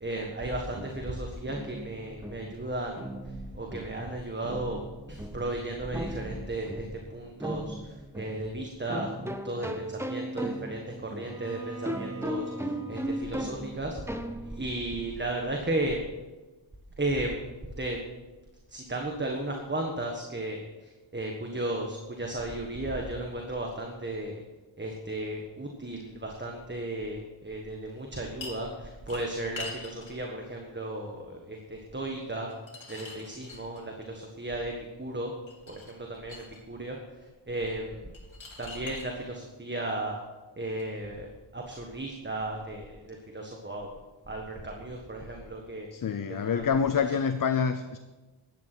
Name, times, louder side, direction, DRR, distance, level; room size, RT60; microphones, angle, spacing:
voice 1, 0.0-3.1 3.5-4.8 5.1-14.0 14.4-16.0 17.0-17.4 17.8-18.0 18.7-24.4 24.8-32.5 32.9-34.7 35.0-35.3 35.7-37.0 37.5-38.0 38.6-40.2 40.6-44.0 44.3-45.9 46.3-46.7 47.0-47.1, right 1 dB, 20° right, 1 dB, 1.6 m, -35 dB
sound 1, 0.6-14.8, equal, 5° right, 0.8 m, -38 dB
Bowed string instrument, 11.2-15.2, right 3 dB, 50° right, 3.7 m, -45 dB
sound 2, 28.4-28.7 29.1-30.2 32.5-34.1 35.5-36.6 38.1-39.1 40.8-40.9, left 3 dB, 65° left, 3.2 m, -43 dB
voice 2, 45.9-48.0, left 6 dB, 40° left, 10 dB, 0.6 m, -27 dB
12.0 x 9.5 x 6.2 m, 1.2 s
wide cardioid pair, 100°, 50 cm